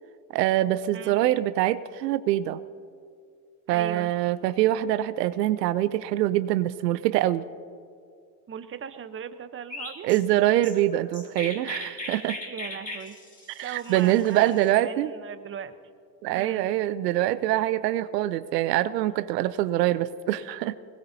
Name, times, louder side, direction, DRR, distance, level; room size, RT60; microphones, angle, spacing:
voice 1, 0.3-2.6 3.7-7.4 10.0-12.4 13.6-15.1 16.2-20.8, right 14 dB, 90° right, 14 dB, 0.7 m, -24 dB
voice 2, 3.7-4.1 8.5-10.1 12.4-13.2 13.6-15.7 16.3-16.7, right 8 dB, 25° right, 11 dB, 0.9 m, -38 dB
Chirp tweet, 9.7-14.8, left 2 dB, 15° left, 2.4 m, -39 dB
21.5 x 19.5 x 2.8 m, 2.2 s
hypercardioid pair, 90°, 48 cm